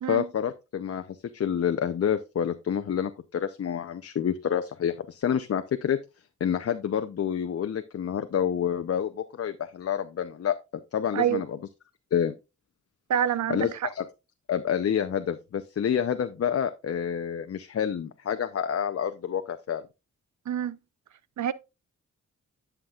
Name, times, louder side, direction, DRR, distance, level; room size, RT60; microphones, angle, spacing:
voice 1, 0.1-6.0 6.4-10.6 10.9-11.5 12.1-12.3 13.5-14.0 14.5-19.8, left 8 dB, 50° left, 0.6 m, -28 dB
voice 2, 13.1-13.9 20.5-20.8 21.4-21.5, right 9 dB, 65° right, 0.6 m, -26 dB
11.5 x 5.9 x 2.4 m
cardioid pair, 70°, 31 cm